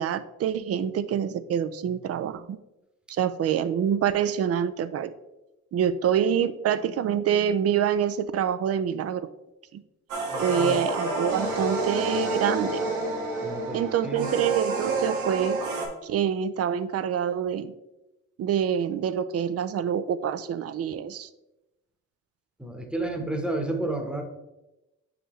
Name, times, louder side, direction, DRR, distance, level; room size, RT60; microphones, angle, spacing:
voice 1, 0.0-2.6 3.1-5.1 5.7-9.3 9.7-9.8 10.4-12.8 13.7-15.6 16.0-17.7 18.4-21.3, right 8 dB, 55° right, 14 dB, 0.5 m, -26 dB
sound 1, 10.1-15.9, right 2 dB, 85° right, 1.3 m, -29 dB
voice 2, 10.3-10.8 13.4-14.3 22.6-24.2, right 2 dB, 5° right, 3 dB, 1.0 m, -31 dB
6.4 x 4.9 x 3.1 m, 0.97 s
cardioid pair, 90°, 30 cm